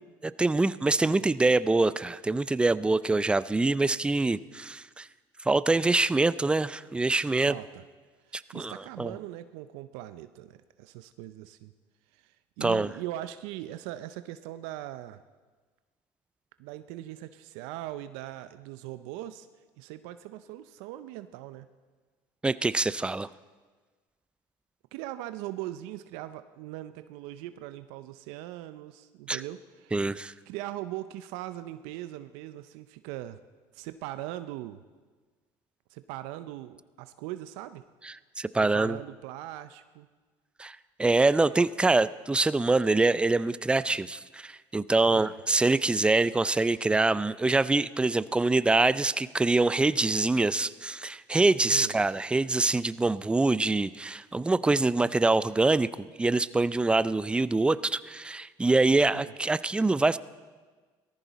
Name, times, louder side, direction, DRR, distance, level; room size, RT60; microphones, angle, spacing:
voice 1, 0.2-5.1 5.5-7.5 8.3-9.1 12.6-12.9 22.4-23.3 29.3-29.4 29.9-30.3 38.4-39.0 40.6-55.9 56.2-60.2, right 3 dB, 10° right, 17 dB, 0.4 m, -25 dB
voice 2, 7.4-7.8 8.2-11.7 12.1-15.2 16.6-19.5 19.8-21.7 24.9-30.0 30.5-33.4 33.7-34.8 35.9-37.8 38.7-40.1 45.0-45.3 51.7-52.0 59.1-59.3, right 14 dB, 85° right, 12 dB, 0.5 m, -40 dB
18.0 x 14.5 x 4.0 m, 1.4 s
supercardioid pair, 95°, 10 cm